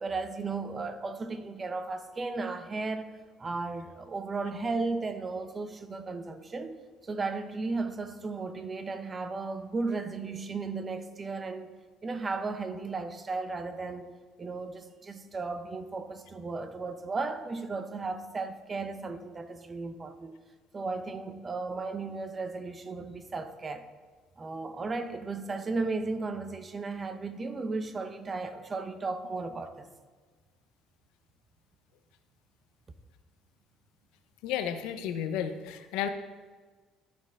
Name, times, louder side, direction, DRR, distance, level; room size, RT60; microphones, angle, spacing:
voice 1, 0.0-3.1 3.4-6.8 7.0-11.7 12.0-14.1 14.4-20.4 20.7-23.9 24.4-29.9, right 3 dB, 30° right, 0.8 m, -35 dB
voice 2, 34.4-36.1, left 9 dB, 80° left, 0.7 m, -32 dB
13.0 x 4.4 x 3.6 m
supercardioid pair, 85°, 0 cm